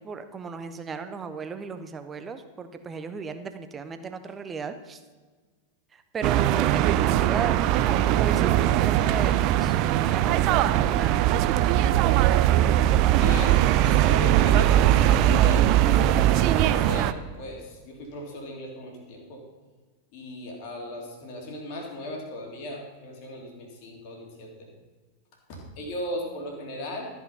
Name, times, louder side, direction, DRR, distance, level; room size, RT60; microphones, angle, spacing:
voice 1, 0.0-5.0 5.9-7.6 7.8-11.2, right 5 dB, 20° right, 9 dB, 0.8 m, -35 dB
sound 1, 6.2-17.1, right 12 dB, 40° right, 0.4 m, -20 dB
voice 2, 13.2-19.4 20.1-24.7 25.5-27.1, equal, 45° left, 0 dB, 2.5 m, -37 dB
13.0 x 5.9 x 5.5 m, 1.4 s
figure-of-eight pair, 90°, 0 cm